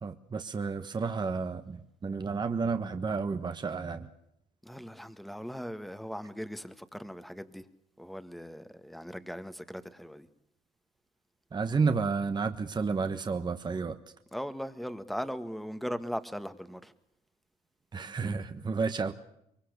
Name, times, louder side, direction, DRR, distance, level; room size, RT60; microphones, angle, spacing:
voice 1, 0.0-4.1 11.5-14.0 17.9-19.1, right 4 dB, 25° right, 8 dB, 1.3 m, -31 dB
voice 2, 4.6-7.6 8.0-10.3 14.3-16.9, equal, ahead, 11 dB, 1.6 m, -39 dB
23.5 x 23.5 x 6.8 m, 0.78 s
cardioid pair, 110°, 17 cm